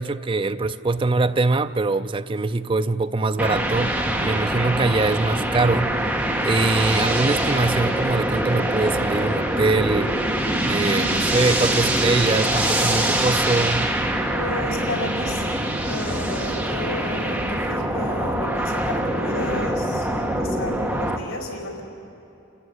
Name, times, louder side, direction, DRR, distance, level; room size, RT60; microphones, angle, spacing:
voice 1, 0.0-3.9 4.2-5.9 6.4-10.1 10.7-13.9, right 3 dB, 25° right, 0.4 m, -23 dB
sound 1, 3.4-21.2, right 1 dB, 5° right, 1.5 m, -24 dB
voice 2, 14.3-21.8, left 2 dB, 85° left, 4.8 m, -33 dB
28.0 x 14.5 x 9.9 m
head